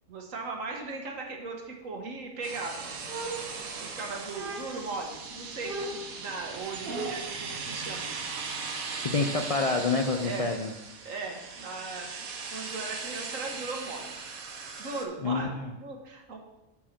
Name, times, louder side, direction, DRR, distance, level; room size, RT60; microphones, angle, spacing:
voice 1, 0.1-3.0 3.6-8.1 10.2-10.5 11.1-12.1 12.5-14.2 14.8-16.4, right 3 dB, 70° right, 2 dB, 1.6 m, -38 dB
sound 1, 2.4-15.1, right 4 dB, 90° right, 1.4 m, -39 dB
sound 2, 3.1-3.9 4.3-5.0 5.6-7.4, right 2 dB, 45° right, 1.1 m, -38 dB
voice 2, 9.1-10.7 15.2-15.7, left 3 dB, 55° left, 4 dB, 0.4 m, -27 dB
10.5 x 4.7 x 4.4 m, 0.95 s
omnidirectional pair, 1.4 m